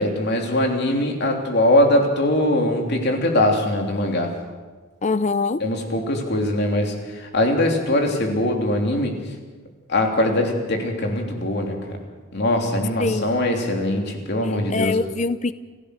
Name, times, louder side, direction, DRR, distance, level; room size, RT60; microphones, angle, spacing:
voice 1, 0.0-4.3 5.6-9.1 9.9-11.8 12.3-15.0, left 1 dB, 55° left, 2 dB, 3.3 m, -21 dB
voice 2, 5.0-5.6 13.0-13.3 14.4-15.5, left 3 dB, 35° left, 14 dB, 0.6 m, -23 dB
29.0 x 15.0 x 6.6 m, 1.3 s
head